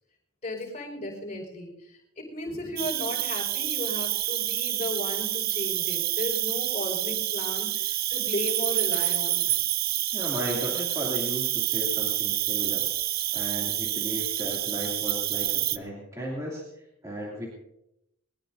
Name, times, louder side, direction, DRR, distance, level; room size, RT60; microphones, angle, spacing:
voice 1, 0.4-1.7 2.2-9.4, left 1 dB, 30° left, -3 dB, 5.3 m, -35 dB
Cricket, 2.8-15.8, right 14 dB, 40° right, 0.4 m, -28 dB
voice 2, 10.1-12.9 13.3-16.6 17.0-17.5, equal, 15° right, -4 dB, 2.8 m, -35 dB
21.0 x 20.0 x 2.8 m, 0.84 s
head